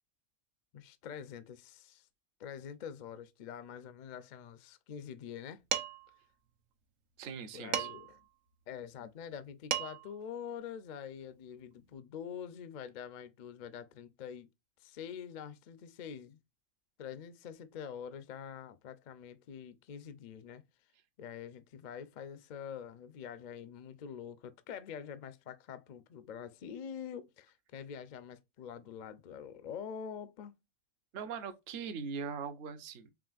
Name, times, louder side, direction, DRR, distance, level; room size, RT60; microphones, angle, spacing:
voice 1, 0.7-2.1 2.4-5.6 7.5-8.2 8.7-14.5 14.8-16.4 17.0-20.6 21.2-30.5, left 8 dB, 60° left, 0.4 m, -45 dB
Dishes pots and pans, 5.7-6.1 7.7-8.2 9.4-9.5 9.7-10.2, right 10 dB, 80° right, 1.0 m, -35 dB
voice 2, 7.2-7.9 31.1-33.1, right 6 dB, 55° right, 0.8 m, -41 dB
5.0 x 3.0 x 2.4 m
omnidirectional pair, 1.4 m